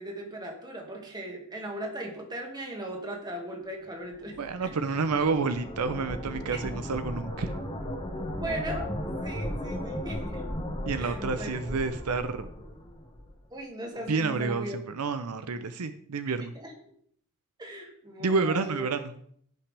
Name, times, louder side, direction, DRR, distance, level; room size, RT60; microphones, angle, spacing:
voice 1, 0.0-4.7 8.4-10.4 11.0-11.6 13.5-14.8 16.4-16.7 17.6-18.9, right 1 dB, 20° right, 1 dB, 1.9 m, -38 dB
sound 1, 4.1-13.4, equal, 25° left, 1.5 m, -36 dB
voice 2, 4.4-7.5 10.9-12.5 14.1-16.5 18.2-19.1, right 4 dB, 80° right, 10 dB, 0.6 m, -29 dB
16.0 x 5.8 x 3.4 m, 0.64 s
head